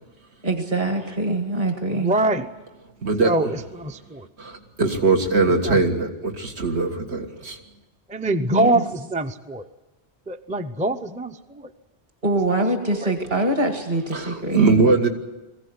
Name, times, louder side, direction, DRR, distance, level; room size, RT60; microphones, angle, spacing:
voice 1, 0.4-2.2 8.5-8.8 12.2-14.9, right 2 dB, 45° right, 4 dB, 2.0 m, -24 dB
voice 2, 1.9-2.5 3.2-4.3 5.6-5.8 8.1-9.6 10.3-11.7 12.5-12.6 12.9-13.1, right 2 dB, 10° right, 8 dB, 0.6 m, -24 dB
voice 3, 3.0-3.4 4.4-7.6 14.1-15.1, right 3 dB, 75° right, 4 dB, 2.1 m, -21 dB
22.0 x 16.0 x 9.6 m, 1.1 s
omnidirectional pair, 1.1 m